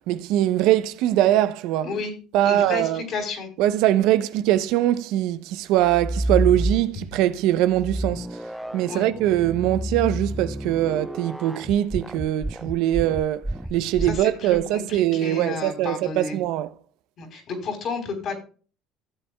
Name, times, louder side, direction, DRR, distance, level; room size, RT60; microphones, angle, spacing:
voice 1, 0.1-1.9 2.3-3.0 3.6-8.4 8.7-13.4 13.7-16.7, right 13 dB, 70° right, 0.6 m, -22 dB
voice 2, 2.4-3.5 8.9-9.1 14.0-16.4 17.2-18.3, left 4 dB, 50° left, 3.8 m, -31 dB
sound 1, 5.8-7.2 7.7-14.7, right 1 dB, 5° right, 0.3 m, -30 dB
16.0 x 7.8 x 2.3 m
supercardioid pair, 105°, 0 cm